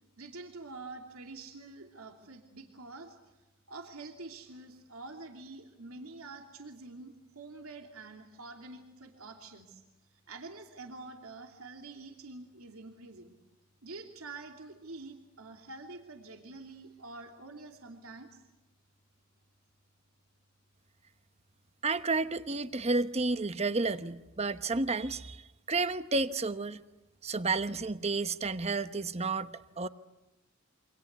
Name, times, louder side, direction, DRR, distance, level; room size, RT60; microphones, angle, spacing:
voice 1, 0.2-3.4 3.7-9.8 10.1-13.4 13.8-18.4, right 3 dB, 85° right, 2.9 m, -47 dB
voice 2, 21.8-25.4 25.7-26.8 27.2-29.9, right 3 dB, 30° right, 1.1 m, -31 dB
28.5 x 25.5 x 8.2 m
head